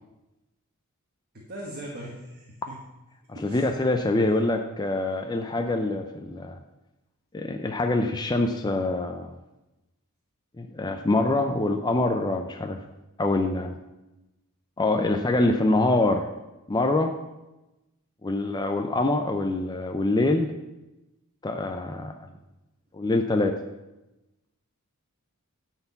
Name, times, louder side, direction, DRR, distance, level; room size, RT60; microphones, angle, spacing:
voice 1, 1.3-2.7 3.3-3.7, right 1 dB, 45° right, -3 dB, 1.4 m, -40 dB
voice 2, 3.4-6.6 7.3-9.3 10.6-12.8 13.2-13.8 14.8-16.3 16.7-17.2 18.2-20.5 21.4-22.1 22.9-23.5, left 2 dB, 20° left, 5 dB, 0.5 m, -25 dB
10.5 x 4.6 x 7.0 m, 1.0 s
head